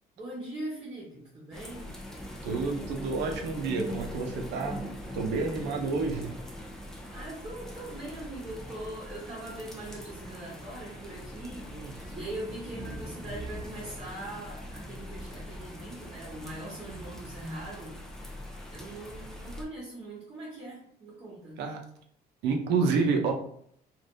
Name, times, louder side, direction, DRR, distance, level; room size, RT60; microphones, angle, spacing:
voice 1, 0.2-1.9 7.1-11.7 12.1-18.0 18.7-21.6, right 1 dB, 35° right, -7 dB, 1.0 m, -41 dB
sound 1, 1.5-19.6, equal, 5° left, 0.6 m, -42 dB
voice 2, 2.4-4.8 5.1-6.3 11.7-11.9 21.6-21.8 22.4-23.3, right 4 dB, 85° right, 3 dB, 0.6 m, -29 dB
3.3 x 2.5 x 2.6 m, 0.65 s
cardioid pair, 110°, 17 cm